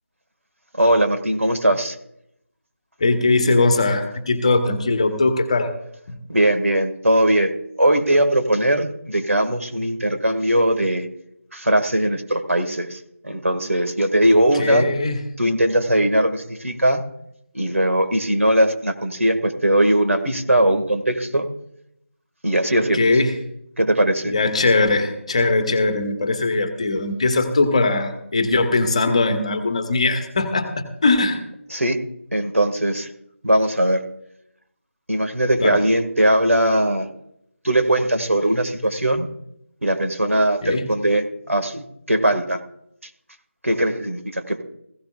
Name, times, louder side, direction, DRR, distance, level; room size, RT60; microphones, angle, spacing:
voice 1, 0.8-2.0 6.3-7.5 7.8-11.1 11.5-13.0 13.2-14.9 15.4-17.0 17.5-21.5 22.4-23.0 23.8-24.3 31.7-32.0 32.3-33.1 33.4-34.0 35.1-37.1 37.6-39.3 39.8-42.6 43.6-44.6, right 1 dB, 80° right, 7 dB, 2.0 m, -20 dB
voice 2, 3.0-5.7 6.1-6.2 14.3-15.2 22.7-23.3 24.2-31.4 35.6-35.8 40.6-40.9, left 3 dB, 25° left, 7 dB, 1.3 m, -20 dB
17.0 x 16.0 x 2.5 m, 0.77 s
figure-of-eight pair, 165°, 7 cm